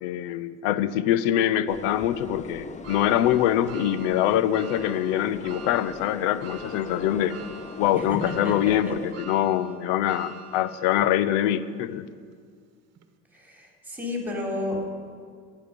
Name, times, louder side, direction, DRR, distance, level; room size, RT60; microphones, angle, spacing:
voice 1, 0.0-7.4 7.8-12.1, left 11 dB, 75° left, 16 dB, 0.7 m, -24 dB
sound 1, 1.7-9.1, left 4 dB, 20° left, 0.7 m, -39 dB
sound 2, 2.8-11.2 11.7-11.8 13.0-13.1, right 6 dB, 45° right, 1.2 m, -45 dB
voice 2, 8.4-8.9 13.3-14.9, left 1 dB, 5° right, -1 dB, 3.9 m, -32 dB
15.5 x 9.5 x 5.2 m, 2.1 s
supercardioid pair, 90°, 36 cm